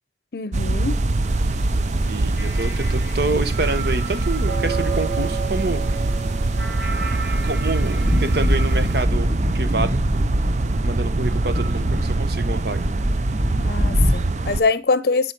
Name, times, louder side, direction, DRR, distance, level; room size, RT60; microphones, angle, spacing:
voice 1, 0.3-0.9 13.6-15.3, left 4 dB, 60° left, 0.6 m, -23 dB
sound 1, 0.5-14.6, right 2 dB, 40° right, 0.5 m, -23 dB
sound 2, 1.3-9.0, right 5 dB, 85° right, 2.3 m, -34 dB
voice 2, 2.0-5.8 7.4-10.0 10.8-12.9, right 2 dB, 60° right, 1.0 m, -27 dB
sound 3, 6.8-14.1, equal, 15° right, 1.4 m, -25 dB
13.0 x 4.4 x 6.0 m
head